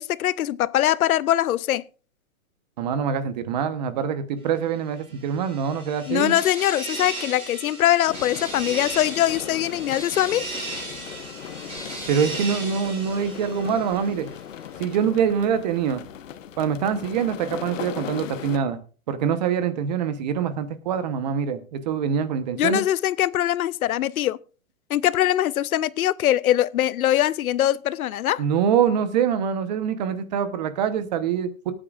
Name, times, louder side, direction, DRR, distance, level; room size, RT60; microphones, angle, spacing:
voice 1, 0.0-1.8 6.1-10.5 22.6-24.4 24.9-28.4, left 12 dB, 85° left, 0.6 m, -22 dB
voice 2, 2.8-6.3 12.1-14.3 14.8-16.0 16.6-18.8 19.1-22.8 28.4-31.7, right 7 dB, 30° right, 1.0 m, -24 dB
sound 1, 5.1-14.2, right 2 dB, 15° right, 4.6 m, -36 dB
sound 2, 8.1-18.6, left 9 dB, 65° left, 1.0 m, -38 dB
24.5 x 8.9 x 2.4 m
hypercardioid pair, 165°, 42 cm